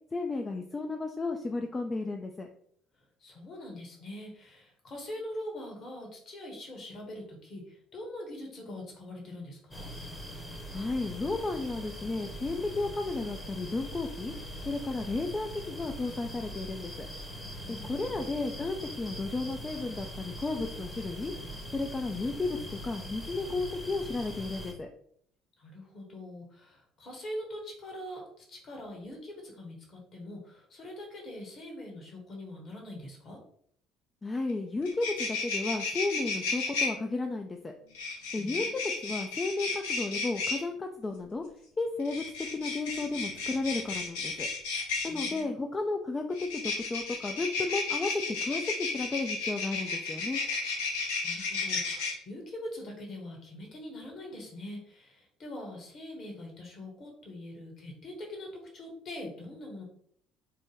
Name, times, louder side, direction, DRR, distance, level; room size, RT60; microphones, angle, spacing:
voice 1, 0.1-2.5 10.7-14.3 14.6-17.1 17.8-21.3 21.7-24.9 34.2-37.7 38.3-41.4 41.8-42.2 42.5-44.5 45.0-50.4, left 3 dB, 25° left, 3 dB, 0.3 m, -33 dB
voice 2, 3.2-9.9 17.6-18.2 25.6-33.4 38.4-38.8 45.0-45.6 51.2-59.8, left 1 dB, 45° left, 1 dB, 1.2 m, -43 dB
sound 1, 9.7-24.7, equal, 10° left, 0.8 m, -42 dB
sound 2, 34.5-34.6 34.8-36.9 37.9-40.6 42.0-45.4 46.3-52.1, left 4 dB, 75° left, 0.6 m, -33 dB
3.4 x 2.1 x 3.1 m, 0.64 s
hypercardioid pair, 60°, 0 cm